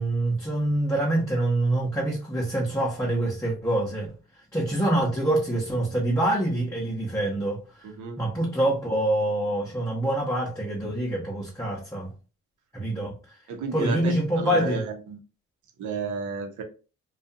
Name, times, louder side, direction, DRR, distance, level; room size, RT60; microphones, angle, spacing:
voice 1, 0.0-4.1 4.5-7.9 8.2-12.1 12.7-13.4 13.7-14.8, right 1 dB, 10° left, -4 dB, 0.8 m, -25 dB
voice 2, 7.8-8.2 13.5-15.2 15.8-16.6, right 5 dB, 75° right, 5 dB, 0.8 m, -32 dB
2.5 x 2.3 x 2.6 m, 0.33 s
cardioid pair, 90°, 30 cm